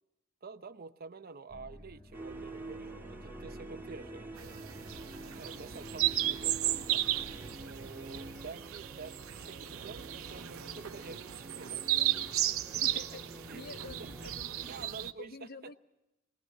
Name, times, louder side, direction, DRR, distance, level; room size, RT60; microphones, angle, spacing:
voice 1, 0.4-4.5 5.3-7.1 7.6-12.1 12.7-13.2 13.5-13.6 14.2-14.3 14.6-15.7, right 4 dB, 45° right, 11 dB, 0.7 m, -49 dB
sound 1, 1.5-7.4, equal, 20° left, 1.2 m, -53 dB
sound 2, 2.1-14.9, right 2 dB, 10° right, 2.7 m, -47 dB
sound 3, 4.4-15.1, right 13 dB, 85° right, 0.7 m, -35 dB
voice 2, 12.7-13.2 13.5-14.9 15.2-15.8, left 3 dB, 50° left, 11 dB, 0.8 m, -48 dB
22.5 x 19.0 x 7.8 m, 0.95 s
head